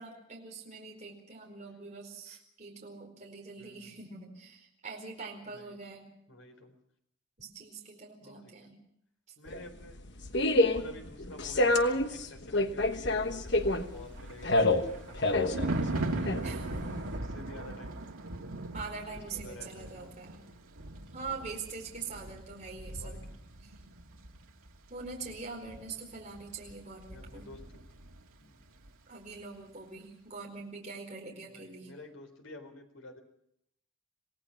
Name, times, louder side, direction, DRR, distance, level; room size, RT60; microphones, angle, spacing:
voice 1, 0.0-6.1 7.4-8.8 10.5-10.9 16.4-17.0 18.7-20.5 21.1-23.2 23.6-23.7 24.9-27.5 29.1-31.9, right 4 dB, 35° right, 0 dB, 4.6 m, -44 dB
voice 2, 3.6-3.9 5.4-5.8 6.3-6.8 8.2-8.7 9.4-10.0 10.7-16.3 17.1-18.0 19.1-20.2 23.0-23.4 27.1-27.9 28.4-28.6 31.4-33.2, left 2 dB, 75° left, 5 dB, 4.2 m, -50 dB
sound 1, 9.5-17.2, left 2 dB, 55° left, 1.3 m, -28 dB
Thunder, 13.8-28.3 28.6-28.9, right 2 dB, 90° right, 2.1 m, -40 dB
27.0 x 18.0 x 5.9 m, 0.73 s
head